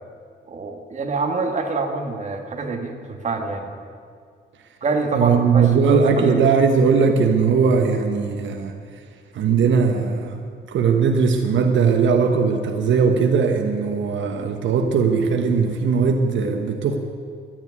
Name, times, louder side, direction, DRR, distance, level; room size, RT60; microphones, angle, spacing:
voice 1, 0.5-3.7 4.8-6.5, right 3 dB, 40° right, 3 dB, 1.7 m, -26 dB
voice 2, 5.1-8.7 9.3-10.4 10.7-17.0, right 5 dB, 80° right, 4 dB, 1.2 m, -19 dB
12.0 x 10.5 x 9.6 m, 2.2 s
cardioid pair, 135°, 19 cm